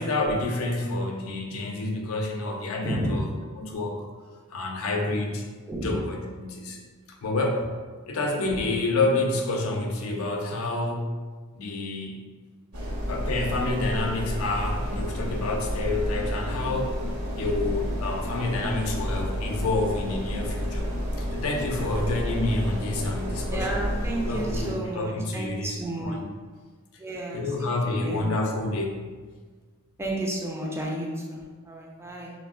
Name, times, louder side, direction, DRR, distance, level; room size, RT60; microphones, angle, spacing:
voice 1, 0.0-3.3 3.6-4.0 4.5-5.4 5.8-6.8 7.2-7.7 8.1-11.2 11.5-12.2 13.1-17.0 17.3-20.9 21.2-23.9 24.2-26.3 27.3-29.0, left 2 dB, 70° left, 1 dB, 0.4 m, -28 dB
voice 2, 2.8-3.2 5.7-6.0 23.5-26.2 27.0-28.3 30.0-32.3, right 1 dB, 10° right, -2 dB, 0.3 m, -32 dB
sound 1, 12.7-24.7, equal, 80° right, 0.8 m, -30 dB
3.3 x 2.1 x 2.4 m, 1.4 s
head